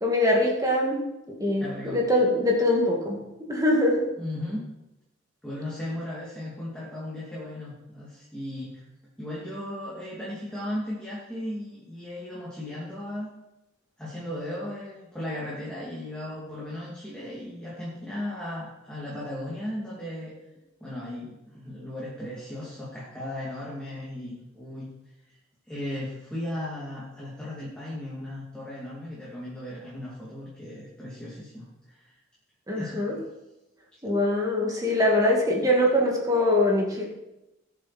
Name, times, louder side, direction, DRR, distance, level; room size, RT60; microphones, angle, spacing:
voice 1, 0.0-4.1 32.7-33.2 34.0-37.1, left 1 dB, 20° right, -1 dB, 2.2 m, -23 dB
voice 2, 1.6-2.0 4.2-4.6 5.4-8.8 9.2-13.3 14.0-20.3 20.8-24.9 25.7-32.1 32.7-33.0, left 1 dB, 5° left, -7 dB, 2.7 m, -36 dB
19.0 x 7.4 x 4.3 m, 0.96 s
head